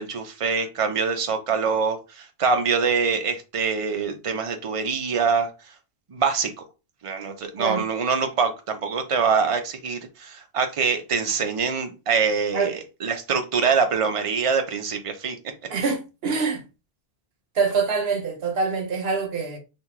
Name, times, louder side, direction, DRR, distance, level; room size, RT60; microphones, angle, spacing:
voice 1, 0.0-5.5 6.1-6.7 7.0-15.4, right 5 dB, 40° right, 0.6 m, -24 dB
voice 2, 15.7-16.6 17.5-19.6, right 4 dB, 75° right, 1.1 m, -25 dB
2.9 x 2.6 x 3.6 m
omnidirectional pair, 1.1 m